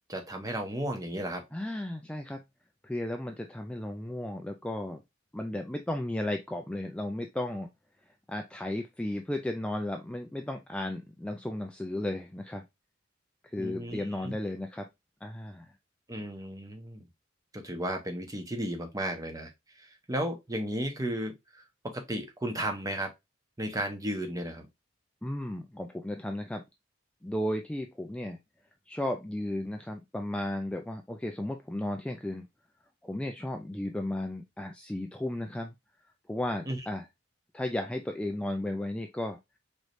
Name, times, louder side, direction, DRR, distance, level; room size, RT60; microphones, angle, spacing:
voice 1, 0.1-1.4 13.6-14.3 16.1-17.1 17.5-19.5 19.8-23.1 23.6-24.7 36.7-36.8, right 1 dB, 20° right, 1.0 m, -34 dB
voice 2, 1.5-2.4 2.8-5.0 5.3-7.7 8.3-12.6 13.4-14.8 15.2-15.7 25.2-26.6 27.2-28.4 28.9-32.5 33.0-35.7 36.3-37.1 37.5-39.4, left 1 dB, 5° left, 0.4 m, -34 dB
4.8 x 3.2 x 2.6 m
head